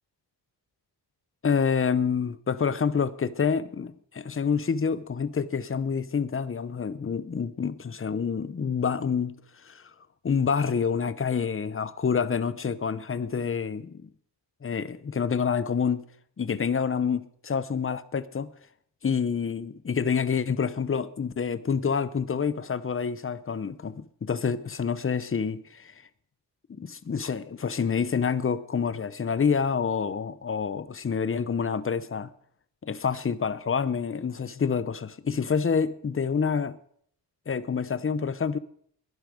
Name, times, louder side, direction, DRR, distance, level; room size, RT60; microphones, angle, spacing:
voice 1, 1.4-9.4 9.6-9.8 10.2-14.0 14.6-16.0 16.4-18.5 19.0-25.9 26.8-32.3 32.8-36.8 37.5-38.6, left 6 dB, 30° left, 0.7 m, -27 dB
20.5 x 11.5 x 5.1 m
wide cardioid pair, 145°, 43 cm